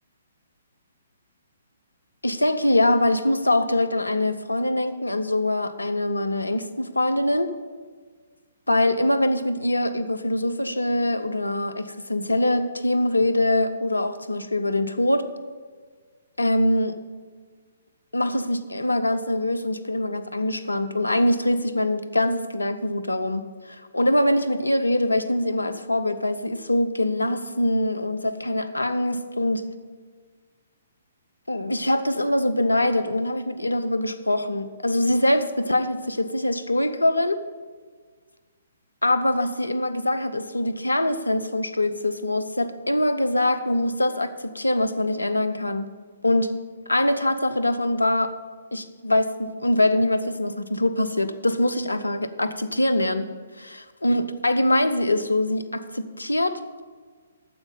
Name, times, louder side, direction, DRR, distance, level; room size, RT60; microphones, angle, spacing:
voice 1, 2.2-7.5 8.7-15.2 16.4-16.9 18.1-29.6 31.5-37.4 39.0-45.9 46.2-46.5 46.9-48.3 48.7-53.3 53.6-56.8, left 1 dB, 85° left, 11 dB, 0.7 m, -23 dB
9.5 x 7.2 x 6.8 m, 1.6 s
figure-of-eight pair, 125°, 0 cm